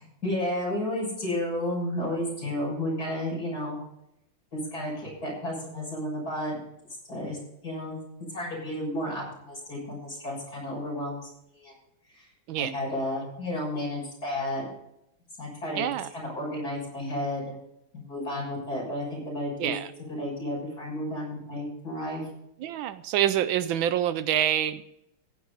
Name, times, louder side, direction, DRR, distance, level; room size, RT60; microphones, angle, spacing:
voice 1, 0.2-3.8 4.5-6.6 7.1-7.4 7.6-8.0 8.3-11.2 11.5-11.7 12.1-12.3 12.6-14.7 15.4-15.8 16.1-17.6 17.9-19.7 20.1-22.2, left 1 dB, 45° left, -3 dB, 7.2 m, -32 dB
voice 2, 15.8-16.1 19.6-19.9 22.6-24.8, right 11 dB, 75° right, 13 dB, 1.4 m, -26 dB
15.5 x 10.5 x 4.1 m, 0.82 s
omnidirectional pair, 2.2 m